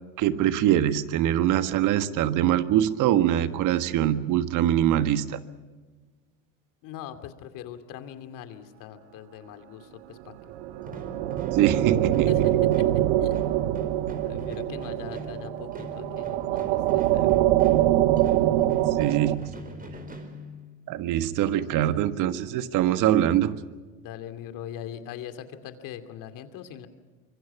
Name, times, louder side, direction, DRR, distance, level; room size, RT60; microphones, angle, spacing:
voice 1, 0.2-5.4 11.5-12.5 18.9-19.5 20.9-23.6, right 11 dB, 60° right, 11 dB, 1.6 m, -23 dB
voice 2, 6.8-10.5 11.6-11.8 12.2-12.5 12.8-13.4 14.2-17.3 24.0-26.9, left 10 dB, 60° left, 8 dB, 2.7 m, -41 dB
sound 1, 10.5-19.3, right 14 dB, 75° right, 1.1 m, -24 dB
sound 2, 10.8-21.0, left 1 dB, 25° right, 4.7 m, -42 dB
25.5 x 24.0 x 6.0 m, 1.3 s
hypercardioid pair, 85°, 36 cm